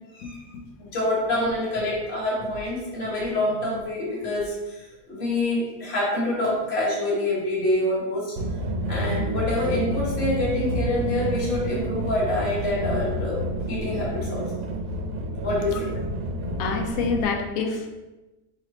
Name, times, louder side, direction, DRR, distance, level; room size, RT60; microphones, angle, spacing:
voice 1, 0.2-0.6 16.3-18.0, left 5 dB, 70° left, 3 dB, 0.9 m, -28 dB
voice 2, 0.8-8.4 8.9-14.6 15.4-15.9, left 1 dB, 35° left, -5 dB, 1.2 m, -26 dB
sound 1, 8.4-17.2, right 1 dB, 85° right, 1.1 m, -29 dB
3.2 x 3.0 x 4.0 m, 1.1 s
omnidirectional pair, 1.7 m